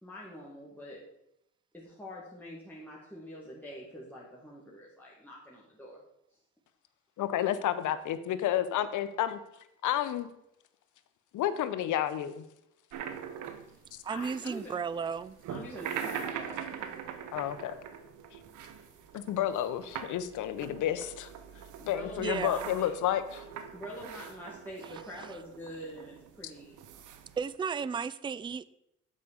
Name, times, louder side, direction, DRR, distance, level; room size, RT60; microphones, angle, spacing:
voice 1, 0.0-1.0 1.7-6.0 14.1-14.8 15.5-16.7 21.8-22.9 23.7-27.1, equal, 5° left, -5 dB, 2.1 m, -45 dB
voice 2, 7.2-9.4 9.8-10.3 11.3-12.4 17.3-17.8 19.1-21.3 21.8-23.4, left 11 dB, 80° left, 12 dB, 0.8 m, -30 dB
sound 1, 12.9-27.5, right 8 dB, 85° right, 0.9 m, -43 dB
voice 3, 14.0-15.4 22.2-22.7 27.4-28.7, right 6 dB, 15° right, 17 dB, 0.3 m, -34 dB
7.6 x 5.1 x 6.8 m, 0.81 s
cardioid pair, 90°, 30 cm